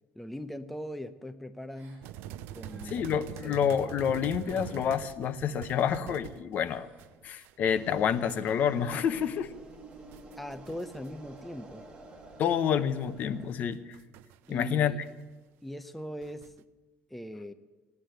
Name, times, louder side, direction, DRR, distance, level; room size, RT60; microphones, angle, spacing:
voice 1, 0.2-2.0 2.5-3.5 10.4-11.8 14.5-15.0 15.6-16.5 17.1-17.5, equal, ahead, 10 dB, 0.5 m, -40 dB
Gasp, 1.7-2.1 2.5-3.1 4.4-5.1 5.7-6.0 6.6-7.1, right 2 dB, 45° right, 5.1 m, -59 dB
sound 1, 2.0-7.6 7.9-8.5 9.7-11.1 11.4-11.5 13.3-14.7 15.0-15.1 16.2-16.6, right 11 dB, 75° right, 0.6 m, -45 dB
voice 2, 2.9-6.9 7.2-9.5 12.4-13.8 14.5-14.9, left 8 dB, 45° left, 13 dB, 0.7 m, -28 dB
sound 2, 7.7-13.5, right 2 dB, 25° right, 2.2 m, -49 dB
16.5 x 9.8 x 8.9 m, 1.2 s
cardioid pair, 155°, 4 cm